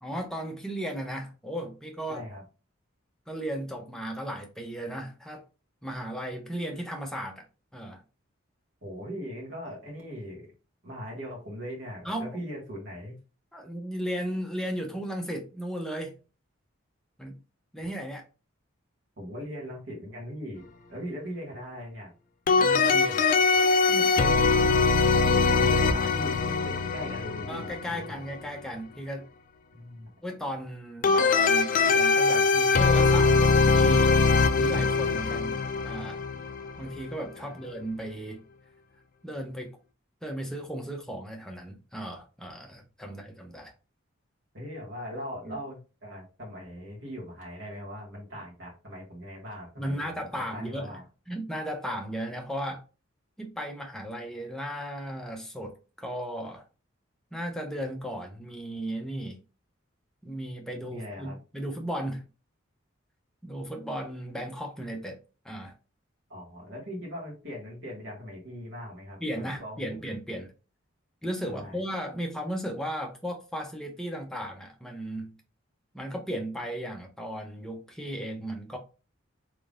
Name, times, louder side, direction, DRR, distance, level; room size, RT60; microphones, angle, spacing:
voice 1, 0.0-2.2 3.3-5.4 5.8-7.4 7.7-8.0 12.0-12.4 13.5-16.1 17.2-17.4 17.7-18.3 22.6-23.3 23.9-24.5 25.6-25.9 27.5-29.3 30.2-34.2 34.6-35.6 35.8-36.2 36.8-38.4 39.2-39.8 40.2-43.7 45.4-45.6 49.8-51.0 51.3-52.8 53.4-56.6 57.3-59.4 60.2-62.2 63.4-65.2 65.4-65.7 69.2-70.5 71.2-75.3 75.9-78.8, equal, 5° left, 0.7 m, -35 dB
voice 2, 2.1-2.4 8.8-10.5 10.8-13.1 19.2-20.6 20.9-22.1 24.2-24.7 25.4-28.2 29.7-30.1 37.4-37.5 44.5-51.0 60.9-61.4 66.3-70.0 71.5-71.8, equal, 65° right, 1.9 m, -40 dB
sound 1, 22.5-28.1 31.0-37.1, left 4 dB, 40° left, 0.3 m, -22 dB
3.7 x 3.5 x 2.5 m
head